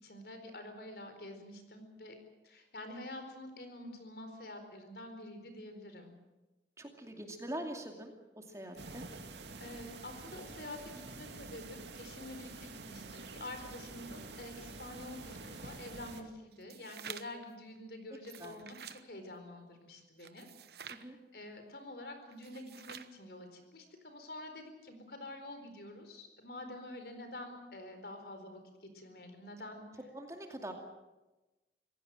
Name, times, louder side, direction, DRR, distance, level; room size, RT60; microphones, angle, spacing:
voice 1, 0.0-6.1 8.6-8.8 9.6-20.5 20.8-29.8, left 1 dB, 60° left, 7 dB, 4.4 m, -48 dB
voice 2, 6.8-9.1 18.4-18.6 20.9-21.2 30.1-30.7, right 1 dB, 15° right, 3 dB, 2.5 m, -44 dB
sound 1, 8.8-16.2, right 3 dB, 85° right, 2.3 m, -48 dB
sound 2, 16.5-17.5 18.1-19.0 20.2-21.1 22.3-23.2, right 8 dB, 65° right, 1.1 m, -49 dB
25.5 x 17.0 x 7.7 m, 1.1 s
head